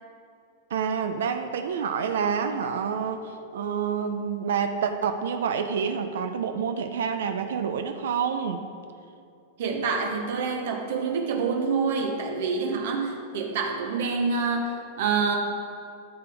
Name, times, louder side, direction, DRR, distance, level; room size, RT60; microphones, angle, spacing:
voice 1, 0.7-8.7, right 6 dB, 85° right, 7 dB, 0.6 m, -28 dB
voice 2, 9.6-15.4, right 5 dB, 65° right, 2 dB, 1.0 m, -27 dB
12.5 x 7.0 x 3.4 m, 2.5 s
supercardioid pair, 160°, 0 cm